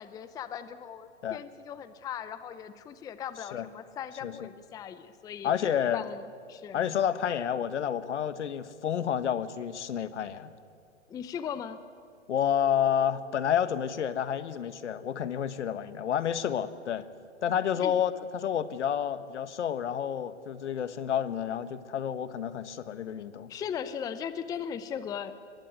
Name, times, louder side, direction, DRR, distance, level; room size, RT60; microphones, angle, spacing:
voice 1, 0.0-5.5 5.9-6.8 11.1-11.8 17.8-17.9 23.5-25.3, left 8 dB, 10° left, 12 dB, 0.6 m, -38 dB
voice 2, 5.4-6.0 6.7-10.5 12.3-17.1 17.4-23.5, left 9 dB, 70° left, 13 dB, 1.6 m, -30 dB
Chink clink, 12.4-17.5, right 8 dB, 15° right, 3.1 m, -57 dB
24.0 x 21.5 x 9.4 m, 2.4 s
hypercardioid pair, 130°, 36 cm